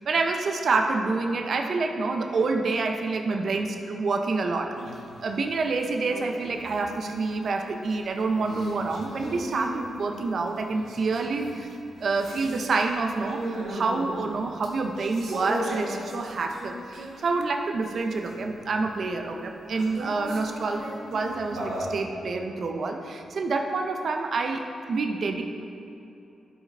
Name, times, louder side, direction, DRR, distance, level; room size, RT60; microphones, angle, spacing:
voice 1, 0.0-4.7 5.2-11.7 12.0-25.5, right 3 dB, 55° right, 4 dB, 0.5 m, -27 dB
sound 1, 4.7-5.2 5.6-17.5 17.8-18.8 19.7-22.0, right 1 dB, 80° right, 1.4 m, -38 dB
12.0 x 4.9 x 3.3 m, 2.8 s
cardioid pair, 95°, 0 cm